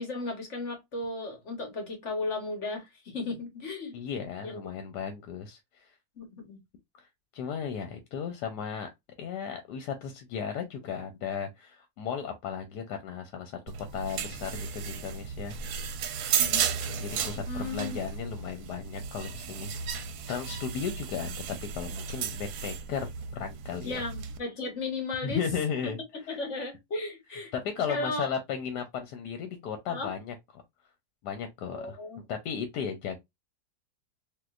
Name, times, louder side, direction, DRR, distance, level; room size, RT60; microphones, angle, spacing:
voice 1, 0.0-3.9 4.4-4.6 6.2-6.6 16.4-16.6 17.5-18.0 23.8-25.4 25.8-25.9 26.3-27.5 27.9-28.3 29.9-30.1 31.7-32.2, left 3 dB, 50° left, 1.3 m, -35 dB
voice 2, 3.9-5.9 7.0-7.1 7.3-8.9 9.2-13.6 13.9-15.6 16.9-24.0 25.2-26.4 27.5-30.6 31.2-32.0 32.3-33.2, left 7 dB, 85° left, 1.2 m, -35 dB
sound 1, 13.7-24.4, right 7 dB, 75° right, 1.0 m, -34 dB
3.6 x 2.7 x 2.3 m
omnidirectional pair, 1.8 m